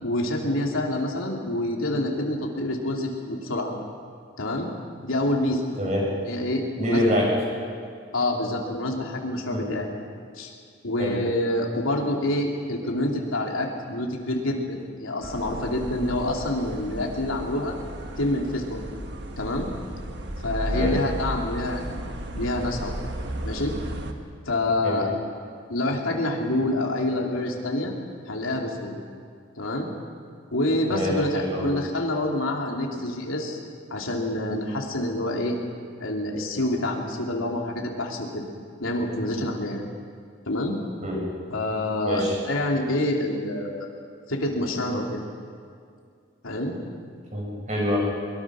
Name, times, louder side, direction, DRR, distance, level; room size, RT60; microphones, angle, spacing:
voice 1, 0.0-3.7 4.4-4.7 5.0-5.7 6.2-7.1 8.1-9.9 10.3-10.5 10.8-17.8 18.2-18.8 19.4-19.7 20.4-22.0 22.3-22.9 23.4-23.7 24.5-25.1 25.7-27.9 28.3-29.0 29.6-29.9 30.5-33.6 33.9-35.6 36.0-38.5 38.8-39.8 40.5-40.7 41.5-43.9 44.3-45.2 46.4-46.8, left 1 dB, 90° left, 0 dB, 3.2 m, -27 dB
voice 2, 5.8-6.1 6.8-7.3 9.5-9.7 11.0-11.2 20.7-21.0 24.8-25.0 30.9-31.7 32.9-33.0 41.0-41.2 42.0-42.4 47.3-48.0, equal, 35° right, -3 dB, 7.8 m, -25 dB
sound 1, 15.2-24.1, right 1 dB, 55° right, 1.7 m, -34 dB
23.0 x 22.5 x 6.4 m, 2.2 s
head